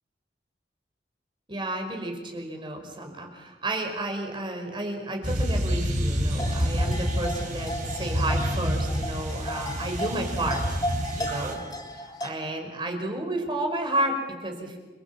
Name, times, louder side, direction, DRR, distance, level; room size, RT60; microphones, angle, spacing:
voice 1, 1.5-10.8 11.2-11.6 11.9-14.8, right 1 dB, 30° right, 4 dB, 5.0 m, -31 dB
sound 1, 5.2-11.5, equal, 45° right, 5.9 m, -28 dB
sound 2, 6.3-12.3, equal, 20° left, 3.4 m, -35 dB
30.0 x 22.0 x 7.3 m, 1.2 s
head